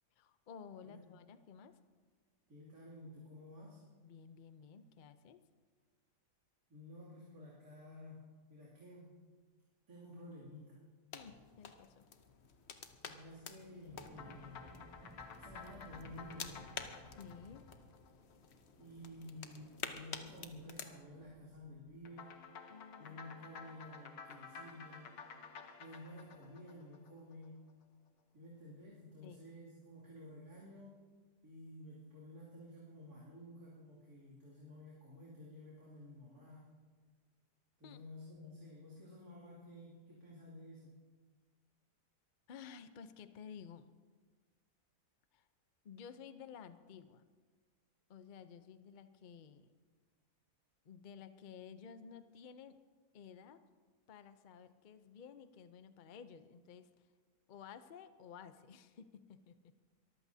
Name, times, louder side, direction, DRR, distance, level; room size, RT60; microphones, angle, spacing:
voice 1, 0.2-1.8 4.0-5.4 11.1-12.0 17.2-17.6 22.7-23.1 29.2-29.5 37.8-38.0 42.5-43.9 45.3-45.5 45.8-47.2 48.1-49.7 50.8-52.8 53.1-53.6 54.1-57.1 57.5-59.5, left 7 dB, 90° left, 11 dB, 0.4 m, -54 dB
voice 2, 2.5-3.8 6.7-9.1 9.9-10.8 13.0-14.6 15.4-16.7 18.8-22.4 23.0-25.2 25.8-27.6 28.3-31.0 31.4-36.7 37.8-40.9, left 1 dB, 60° right, -7 dB, 3.2 m, -53 dB
sound 1, 11.1-20.9, left 6 dB, 50° left, 1.0 m, -50 dB
sound 2, 11.6-12.2 12.5-22.0, right 1 dB, 20° right, 2.2 m, -62 dB
sound 3, 14.1-18.7 22.1-27.5, left 5 dB, 65° left, 1.5 m, -53 dB
23.5 x 14.5 x 2.8 m, 1.5 s
omnidirectional pair, 1.8 m